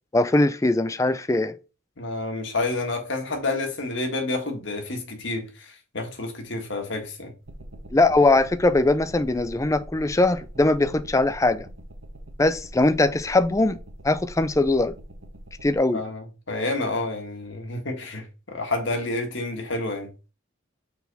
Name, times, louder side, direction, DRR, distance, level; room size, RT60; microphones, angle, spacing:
voice 1, 0.1-1.6 7.9-11.7 12.4-13.8 14.0-14.9 15.6-16.0, left 2 dB, 15° left, 0.4 m, -21 dB
voice 2, 2.0-7.3 15.9-20.1, left 2 dB, 60° left, 1.5 m, -29 dB
sound 1, 7.5-15.8, right 1 dB, 70° right, 1.1 m, -42 dB
6.7 x 4.1 x 4.0 m
head